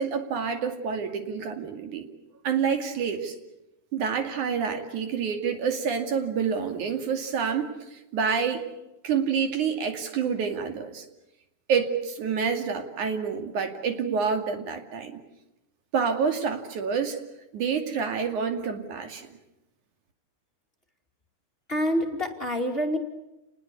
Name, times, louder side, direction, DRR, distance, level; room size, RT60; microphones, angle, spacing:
voice 1, 0.0-2.1 2.4-3.4 3.9-8.6 9.0-11.0 11.7-15.1 15.9-17.2 17.5-19.3, right 6 dB, 85° right, 6 dB, 3.9 m, -28 dB
voice 2, 21.7-23.0, equal, 20° left, 4 dB, 2.5 m, -26 dB
30.0 x 20.0 x 8.3 m, 0.94 s
omnidirectional pair, 3.4 m